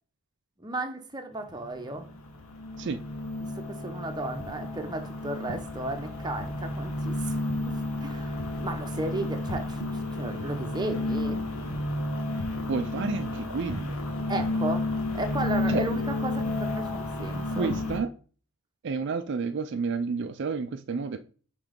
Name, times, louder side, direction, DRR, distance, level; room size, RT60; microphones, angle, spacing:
voice 1, 0.6-2.1 3.4-7.4 7.7-11.4 14.3-14.9 15.1-17.7, right 2 dB, 20° right, 0.8 m, -34 dB
sound 1, 1.5-18.0, left 2 dB, 85° left, 1.3 m, -31 dB
voice 2, 12.7-14.0 15.7-15.8 17.5-18.1 18.8-21.2, right 5 dB, 55° right, 0.4 m, -30 dB
5.9 x 4.0 x 5.1 m
head